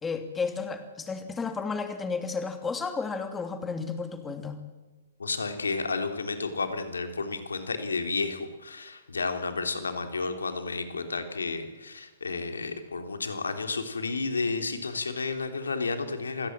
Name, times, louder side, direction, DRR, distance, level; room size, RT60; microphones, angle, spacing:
voice 1, 0.0-4.7, left 4 dB, 10° left, 7 dB, 2.8 m, -32 dB
voice 2, 5.2-16.5, left 4 dB, 80° left, 6 dB, 3.6 m, -31 dB
27.5 x 17.0 x 7.6 m, 1.2 s
hypercardioid pair, 125°, 0 cm